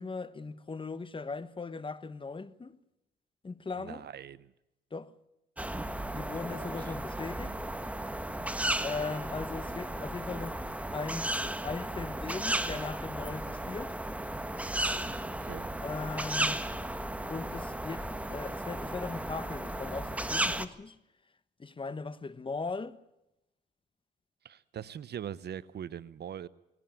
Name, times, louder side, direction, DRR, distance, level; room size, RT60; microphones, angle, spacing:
voice 1, 0.0-2.8 3.4-4.0 4.9-5.1 6.1-7.6 8.8-10.6 10.9-13.9 15.8-16.6 17.3-20.9 21.6-23.0, left 4 dB, 25° left, 1.3 m, -39 dB
voice 2, 3.8-4.5 6.2-6.9 15.2-15.7 24.4-26.5, right 9 dB, 55° right, 0.9 m, -42 dB
sound 1, 5.6-20.7, right 1 dB, 5° right, 1.5 m, -35 dB
21.0 x 17.5 x 9.1 m
cardioid pair, 90°, 20 cm